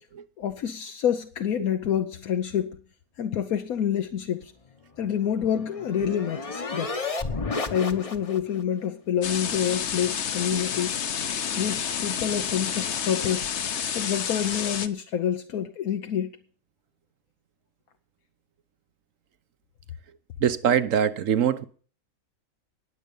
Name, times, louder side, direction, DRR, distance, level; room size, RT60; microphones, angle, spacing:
voice 1, 0.4-2.8 3.2-4.5 5.0-6.9 7.7-10.9 11.6-13.5 13.9-16.4, left 9 dB, 80° left, 1.3 m, -27 dB
sound 1, 5.0-8.6, left 3 dB, 30° left, 0.9 m, -32 dB
sound 2, 9.2-14.9, left 7 dB, 55° left, 1.1 m, -30 dB
voice 2, 20.4-21.6, right 8 dB, 65° right, 1.3 m, -23 dB
19.5 x 7.8 x 5.4 m
omnidirectional pair, 1.5 m